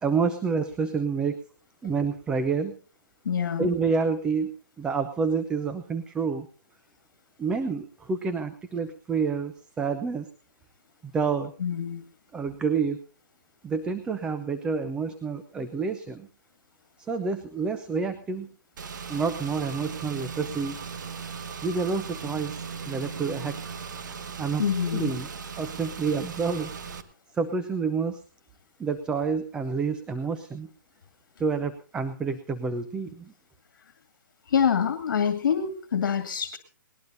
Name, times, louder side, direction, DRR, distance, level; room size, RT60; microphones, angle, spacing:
voice 1, 0.0-1.4 1.8-2.8 3.6-4.5 4.8-6.5 7.4-10.3 11.0-11.5 12.3-13.0 13.6-16.3 17.0-18.5 19.1-20.8 21.6-23.7 24.0-24.6 24.9-25.3 25.6-26.7 27.3-28.2 28.8-30.7 31.4-33.3, right 5 dB, 10° right, 10 dB, 0.7 m, -28 dB
voice 2, 3.3-3.7 11.6-12.0 24.6-25.1 34.5-36.6, left 7 dB, 65° left, 9 dB, 2.0 m, -26 dB
Car / Engine, 18.8-27.0, right 6 dB, 65° right, 1.8 m, -38 dB
20.5 x 19.5 x 2.7 m, 0.38 s
hypercardioid pair, 160°, 11 cm